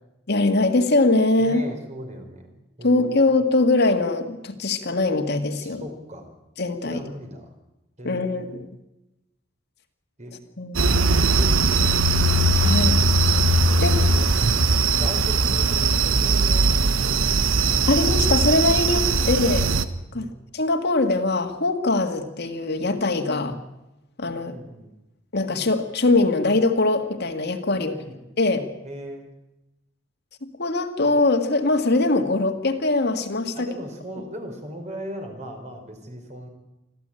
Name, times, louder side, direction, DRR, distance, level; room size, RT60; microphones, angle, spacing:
voice 1, 0.3-1.6 2.8-5.8 6.6-7.0 8.0-8.7 10.6-10.8 12.6-13.0 13.8-13.9 17.9-19.7 20.1-20.3 20.5-23.5 24.2-24.5 25.3-27.9 28.4-28.7 30.6-33.7, left 2 dB, 55° left, 5 dB, 2.0 m, -22 dB
voice 2, 1.4-2.5 2.8-3.1 5.6-6.3 6.9-7.5 8.0-8.6 10.2-10.4 11.2-12.1 13.7-14.3 15.0-17.8 20.1-20.5 23.3-23.6 24.4-24.9 27.7-28.2 28.8-29.3 33.5-36.5, equal, 35° right, 4 dB, 4.8 m, -38 dB
sound 1, 10.7-19.8, right 3 dB, 90° right, 1.2 m, -20 dB
25.5 x 14.5 x 9.1 m, 0.96 s
head